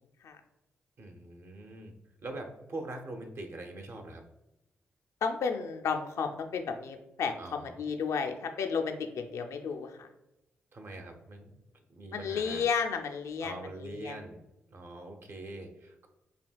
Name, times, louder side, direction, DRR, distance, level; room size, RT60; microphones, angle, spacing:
voice 1, 1.0-1.9 2.2-4.2 7.4-7.8 10.7-11.5 11.9-12.6 13.4-14.4 14.7-16.1, right 2 dB, 50° right, 4 dB, 0.7 m, -43 dB
voice 2, 5.2-10.1 12.1-14.2, left 6 dB, 70° left, 4 dB, 0.4 m, -33 dB
5.1 x 2.8 x 2.3 m, 0.92 s
hypercardioid pair, 40°, 5 cm